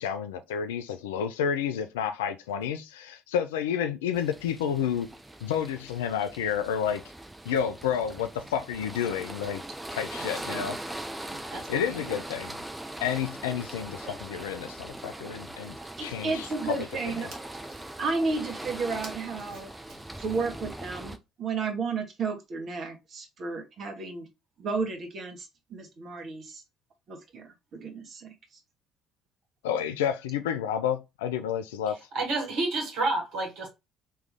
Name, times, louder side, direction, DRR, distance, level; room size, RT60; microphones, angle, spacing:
voice 1, 0.0-5.1 5.4-7.0 7.5-9.6 9.9-10.8 11.7-12.5 13.0-16.8 17.1-17.3 29.6-32.0, left 8 dB, 70° left, 0.4 m, -30 dB
sound 1, 4.1-21.2, right 1 dB, 10° right, 0.6 m, -41 dB
voice 2, 10.2-10.8 11.5-12.2 19.5-19.6 31.9-33.7, right 2 dB, 60° right, 1.7 m, -31 dB
voice 3, 16.0-17.3 18.0-19.7 20.2-24.3 24.6-26.6 27.1-28.3, right 4 dB, 45° right, 1.3 m, -33 dB
3.4 x 3.1 x 3.6 m
figure-of-eight pair, 55°, 0 cm